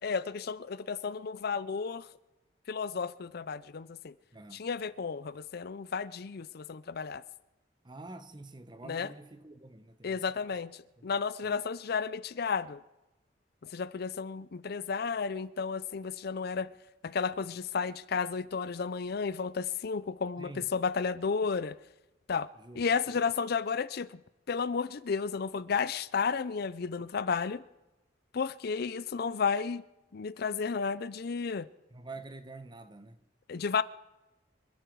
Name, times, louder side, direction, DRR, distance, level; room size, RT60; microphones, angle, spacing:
voice 1, 0.0-2.1 2.7-4.1 4.5-7.2 8.9-9.1 10.0-10.7 11.0-12.8 13.6-16.7 17.0-21.8 22.3-22.5 22.8-24.2 24.5-27.6 28.3-29.8 30.1-31.7 33.5-33.8, left 5 dB, 55° left, 0.5 m, -32 dB
voice 2, 4.3-4.7 7.8-10.2 11.0-11.6 20.4-20.7 22.5-23.3 31.9-33.2, right 2 dB, 25° right, 0.9 m, -48 dB
26.0 x 11.5 x 4.7 m
head